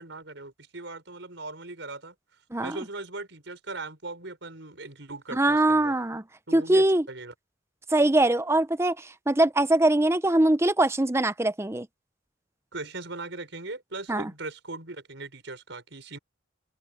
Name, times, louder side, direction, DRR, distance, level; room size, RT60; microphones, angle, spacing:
voice 1, 0.0-2.1 2.6-5.9 6.5-7.3 12.7-16.2, right 2 dB, 70° right, 5.6 m, -39 dB
voice 2, 5.3-6.2 6.5-7.0 7.9-11.9 14.1-14.3, right 1 dB, 15° right, 0.7 m, -22 dB
open air
head